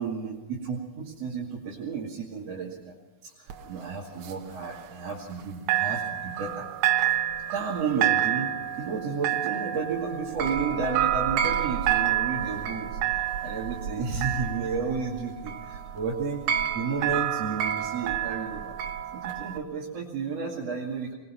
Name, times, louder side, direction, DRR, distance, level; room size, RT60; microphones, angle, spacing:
voice 1, 0.0-2.9 3.2-6.7 7.5-18.7 19.1-21.1, right 5 dB, 60° right, -4 dB, 3.4 m, -32 dB
sound 1, 3.5-5.4 5.7-19.6, right 10 dB, 85° right, 2.8 m, -29 dB
21.5 x 21.0 x 5.9 m, 1.0 s
omnidirectional pair, 3.4 m